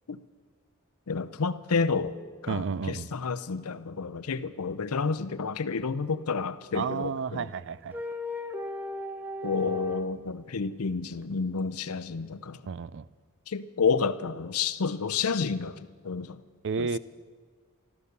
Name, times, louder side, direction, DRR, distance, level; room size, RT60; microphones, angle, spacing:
voice 1, 1.1-2.2 2.4-7.5 9.4-12.6 13.5-15.8 16.0-16.4 16.8-16.9, left 5 dB, 75° left, 0.6 m, -30 dB
voice 2, 2.5-3.1 6.7-8.0 12.7-13.0 16.6-17.0, right 5 dB, 55° right, 0.4 m, -31 dB
sound 1, 6.9-7.0 7.9-10.1, left 1 dB, 10° right, 0.8 m, -36 dB
13.5 x 13.0 x 6.8 m
head